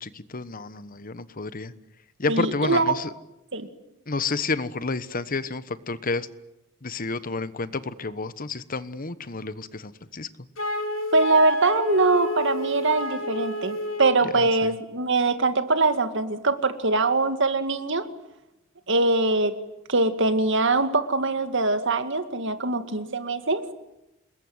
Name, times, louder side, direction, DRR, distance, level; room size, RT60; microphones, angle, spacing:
voice 1, 0.0-1.7 2.2-3.1 4.1-6.3 6.8-10.3 14.2-14.7, left 3 dB, 45° left, 14 dB, 1.2 m, -30 dB
voice 2, 2.3-2.8 3.5-3.7 11.1-18.1 18.9-19.6 19.9-23.6, right 3 dB, 65° right, 9 dB, 2.2 m, -23 dB
Wind instrument woodwind instrument, 10.6-14.3, left 1 dB, 70° left, 3.3 m, -29 dB
27.5 x 21.5 x 9.7 m, 0.91 s
head